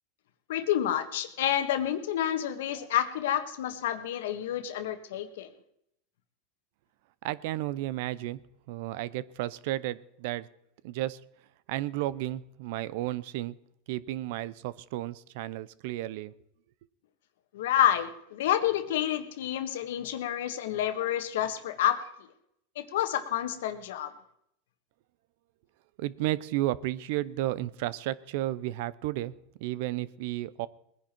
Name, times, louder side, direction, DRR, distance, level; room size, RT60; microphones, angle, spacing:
voice 1, 0.5-5.5 17.5-22.1 22.7-24.1, left 11 dB, 80° left, 10 dB, 1.5 m, -29 dB
voice 2, 7.2-8.4 8.7-10.5 10.8-11.2 11.7-13.5 13.9-16.3 26.0-29.3 29.6-30.7, right 15 dB, 70° right, 20 dB, 0.6 m, -33 dB
20.5 x 10.5 x 4.5 m, 0.75 s
supercardioid pair, 125°, 0 cm